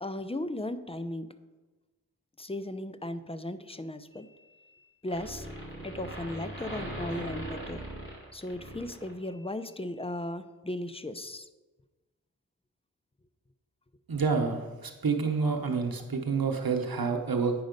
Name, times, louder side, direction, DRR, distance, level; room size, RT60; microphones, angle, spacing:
voice 1, 0.0-1.3 2.4-4.3 5.0-5.5 5.8-7.8 8.3-11.5, left 1 dB, 15° left, 11 dB, 0.5 m, -36 dB
sound 1, 4.1-4.8 5.1-9.5, right 1 dB, 35° left, 2.8 m, -40 dB
voice 2, 14.1-17.5, right 5 dB, 80° right, 3 dB, 0.9 m, -28 dB
9.0 x 5.4 x 5.2 m, 1.2 s
cardioid pair, 40°, 35 cm